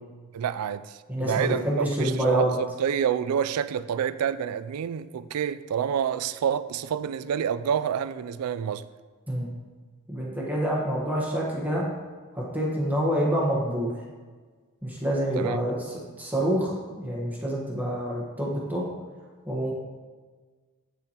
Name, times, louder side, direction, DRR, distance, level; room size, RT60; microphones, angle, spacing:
voice 1, 0.3-8.9 15.4-15.6, right 8 dB, 85° right, 15 dB, 0.3 m, -28 dB
voice 2, 1.1-2.5 9.3-9.5 10.1-11.8 12.3-13.9 14.8-15.7 16.2-18.9 19.5-19.7, equal, 10° right, -4 dB, 1.2 m, -27 dB
8.3 x 6.9 x 2.9 m, 1.4 s
head